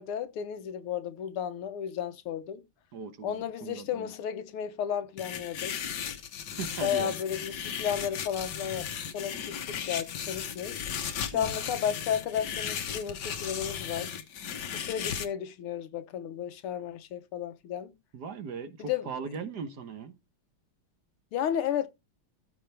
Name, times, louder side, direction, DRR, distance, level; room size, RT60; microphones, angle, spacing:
voice 1, 0.0-2.6 3.2-5.7 6.8-10.8 11.2-14.1 14.7-17.9 18.8-19.1 21.3-21.9, left 9 dB, 80° left, 1.8 m, -33 dB
voice 2, 2.9-4.1 6.5-7.1 11.3-11.6 18.1-20.1, right 6 dB, 55° right, 1.5 m, -39 dB
sound 1, 5.2-15.3, left 8 dB, 60° left, 1.4 m, -36 dB
14.5 x 4.9 x 3.3 m
omnidirectional pair, 2.4 m